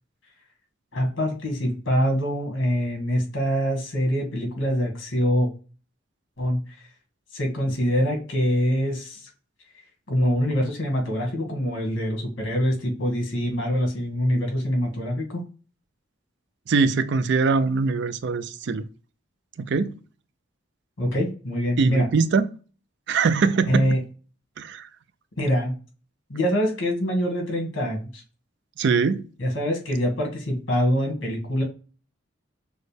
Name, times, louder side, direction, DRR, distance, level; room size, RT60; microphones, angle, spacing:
voice 1, 0.9-5.5 6.4-6.6 7.3-9.3 10.1-15.4 21.0-22.1 23.7-24.0 25.4-25.7 26.3-28.2 29.4-31.6, equal, 75° left, 1.8 m, -24 dB
voice 2, 16.7-18.9 19.6-20.0 21.8-22.5 23.1-24.0 24.6-24.9 28.8-29.3, right 4 dB, 60° right, 0.4 m, -22 dB
6.2 x 2.2 x 3.3 m
head